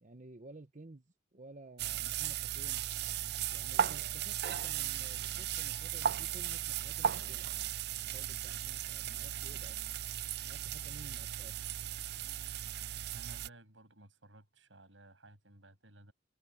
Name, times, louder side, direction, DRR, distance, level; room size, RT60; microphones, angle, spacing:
voice 1, 0.0-2.8 3.5-7.5 8.0-9.8 10.4-11.6, right 2 dB, 40° right, 1.0 m, -54 dB
sound 1, 1.8-13.5, right 10 dB, 60° right, 0.5 m, -36 dB
voice 2, 13.1-16.1, right 1 dB, 85° right, 7.7 m, -57 dB
head